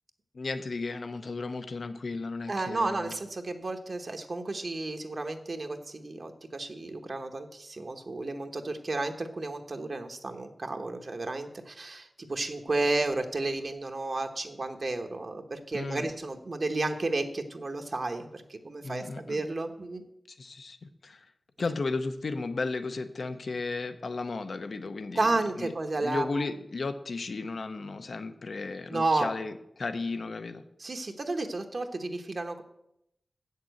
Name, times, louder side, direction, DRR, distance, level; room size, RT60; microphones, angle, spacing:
voice 1, 0.3-3.2 15.7-16.1 18.8-19.4 20.3-21.3 21.6-25.7 26.0-30.6, left 3 dB, 70° left, 10 dB, 0.8 m, -34 dB
voice 2, 2.5-20.0 25.1-26.5 28.9-29.3 30.8-32.6, right 2 dB, 55° right, 5 dB, 1.0 m, -32 dB
7.4 x 6.7 x 7.9 m, 0.80 s
wide cardioid pair, 65°, 0 cm